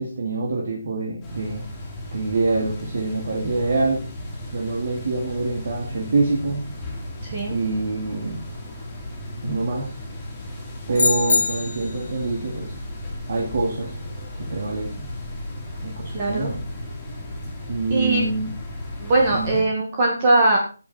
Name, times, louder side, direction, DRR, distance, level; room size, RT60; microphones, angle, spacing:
voice 1, 0.0-1.6 2.1-4.0 4.5-6.6 7.5-8.4 9.4-9.9 10.9-12.8 13.3-14.0 14.4-15.1 15.8-16.6 17.7-18.5 19.3-19.6, right 3 dB, 40° right, 0 dB, 2.4 m, -25 dB
sound 1, 1.2-19.6, left 1 dB, 5° left, 3.1 m, -35 dB
voice 2, 7.2-7.6 16.1-16.5 17.9-18.2 19.0-20.6, right 2 dB, 20° right, -1 dB, 1.9 m, -20 dB
sound 2, 10.9-12.1, left 4 dB, 60° left, 0.4 m, -22 dB
14.5 x 8.1 x 4.4 m, 0.36 s
hypercardioid pair, 180°, 0 cm